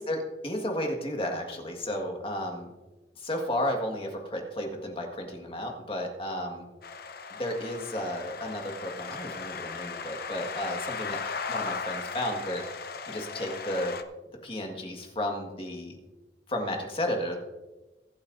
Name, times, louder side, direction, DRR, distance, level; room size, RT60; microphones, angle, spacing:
voice 1, 0.0-2.7 3.2-6.7 7.4-11.2 11.5-12.6 13.1-14.0 14.4-16.0 16.5-17.4, left 1 dB, 30° left, 2 dB, 1.7 m, -33 dB
sound 1, 6.8-14.0, left 5 dB, 50° left, 0.8 m, -37 dB
23.0 x 8.6 x 2.7 m, 1.1 s
head